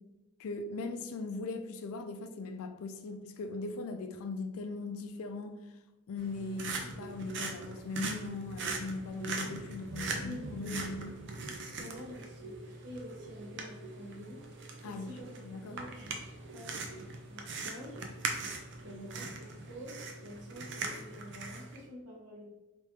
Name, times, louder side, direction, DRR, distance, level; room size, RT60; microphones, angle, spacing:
voice 1, 0.4-5.5 6.1-11.1 14.8-15.1 15.4-15.8, left 3 dB, 65° left, 0.4 m, -39 dB
sound 1, 6.2-21.8, right 3 dB, 55° right, 0.5 m, -41 dB
voice 2, 9.9-11.0 11.7-14.4 14.8-15.3 15.6-16.1 16.5-16.8 17.3-18.0 18.8-22.5, equal, 90° right, 1.1 m, -47 dB
3.5 x 2.9 x 2.8 m
head